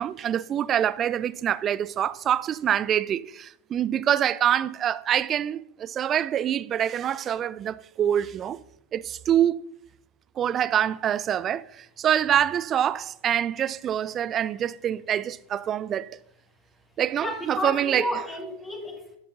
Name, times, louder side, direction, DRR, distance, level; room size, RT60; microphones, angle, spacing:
voice 1, 0.0-8.6 8.9-9.6 10.4-16.1 17.0-18.0, right 10 dB, 25° right, 0.4 m, -25 dB
voice 2, 17.2-19.2, left 1 dB, 10° left, 1.4 m, -32 dB
11.0 x 6.8 x 4.1 m
figure-of-eight pair, 90°, 0 cm